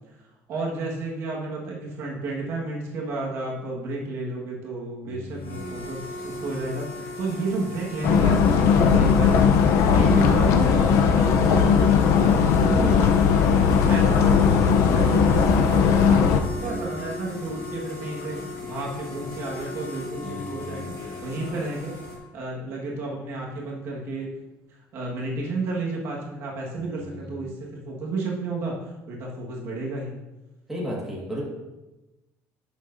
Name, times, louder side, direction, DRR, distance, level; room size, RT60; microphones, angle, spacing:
voice 1, 0.5-9.5 9.9-16.3 16.6-20.9 21.2-21.9 22.3-24.3 24.9-28.7 29.1-30.2, right 3 dB, 50° right, -3 dB, 1.6 m, -31 dB
voice 2, 5.0-5.8 16.5-17.0 20.2-20.9 26.9-27.4 30.7-31.4, equal, 5° right, -5 dB, 1.7 m, -35 dB
sound 1, 5.3-22.2, left 3 dB, 40° left, 1.7 m, -37 dB
sound 2, 8.0-16.4, left 6 dB, 60° left, 0.6 m, -18 dB
11.0 x 6.6 x 2.7 m, 1.0 s
cardioid pair, 175°, 6 cm